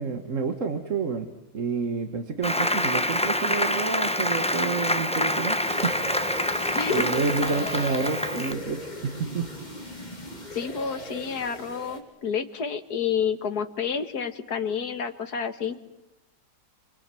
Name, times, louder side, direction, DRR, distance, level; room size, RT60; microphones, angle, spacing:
voice 1, 0.0-5.9 6.9-9.5, right 5 dB, 50° right, 7 dB, 1.8 m, -29 dB
Applause, 2.4-8.5, left 1 dB, 5° left, 0.7 m, -26 dB
sound 1, 5.6-12.0, equal, 25° left, 3.5 m, -37 dB
voice 2, 10.5-15.8, left 7 dB, 65° left, 9 dB, 2.1 m, -29 dB
29.0 x 25.5 x 7.7 m, 0.88 s
omnidirectional pair, 1.8 m